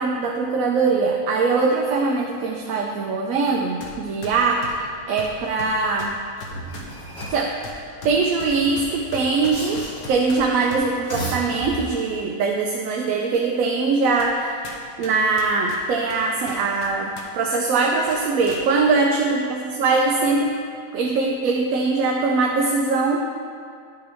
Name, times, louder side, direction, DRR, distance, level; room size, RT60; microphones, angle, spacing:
voice 1, 0.0-6.2 7.3-14.6 15.0-20.6 20.9-23.3, right 4 dB, 70° right, 1 dB, 1.0 m, -22 dB
sound 1, 3.8-4.0 4.2-10.9 11.5-12.2 12.7-12.8 13.5-13.6 14.2-14.4 14.6-17.3 17.5-17.7 18.1-18.6, left 2 dB, 85° left, 1.5 m, -39 dB
sound 2, 6.5-7.5 8.4-10.2 10.9-12.2, right 1 dB, 60° left, 2.7 m, -34 dB
11.0 x 5.9 x 3.4 m, 2.2 s
omnidirectional pair, 1.5 m